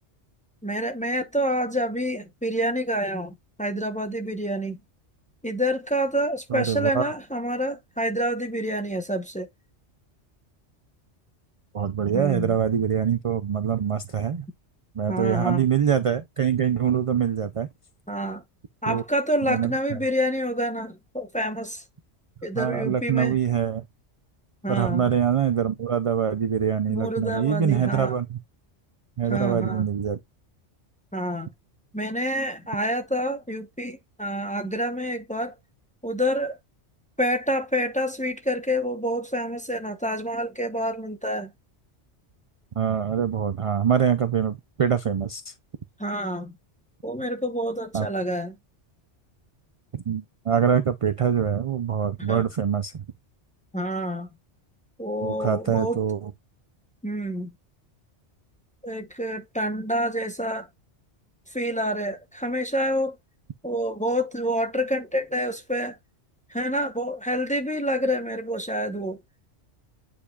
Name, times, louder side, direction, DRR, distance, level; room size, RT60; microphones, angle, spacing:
voice 1, 0.6-4.8 5.4-9.5 12.1-12.6 15.1-15.6 18.1-18.4 18.8-21.8 22.4-23.4 24.6-25.1 26.9-28.2 29.3-29.9 31.1-31.5 31.9-35.5 36.0-36.6 37.2-41.5 46.0-46.5 47.0-48.6 52.3-52.4 53.7-54.3 55.0-56.0 57.0-57.5 58.8-60.7 61.5-63.2 63.6-66.0 66.5-69.2, equal, 10° left, 0.7 m, -28 dB
voice 2, 6.5-7.1 11.7-14.5 15.0-17.7 18.9-19.0 19.5-19.7 22.6-23.8 24.7-28.4 29.2-30.2 42.8-45.5 47.9-48.1 49.9-53.0 55.2-56.3, right 8 dB, 55° right, 0.3 m, -24 dB
8.6 x 4.9 x 2.3 m
omnidirectional pair, 1.2 m